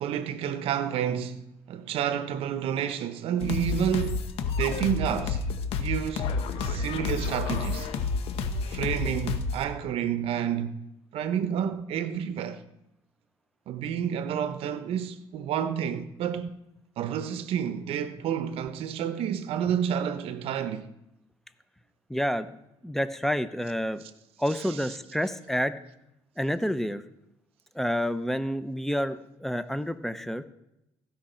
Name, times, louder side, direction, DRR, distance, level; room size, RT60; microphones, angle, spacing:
voice 1, 0.0-4.3 4.6-5.4 5.8-7.9 8.7-10.8 11.1-12.6 13.7-16.5 17.0-20.9 24.5-24.9, right 8 dB, 75° right, 0.7 m, -30 dB
sound 1, 3.4-9.6, left 4 dB, 75° left, 1.1 m, -30 dB
voice 2, 22.1-22.6 22.8-24.0 24.4-25.8 26.4-27.0 27.7-30.4, equal, 5° left, 0.6 m, -29 dB
15.5 x 5.8 x 4.3 m
cardioid pair, 110°, 10 cm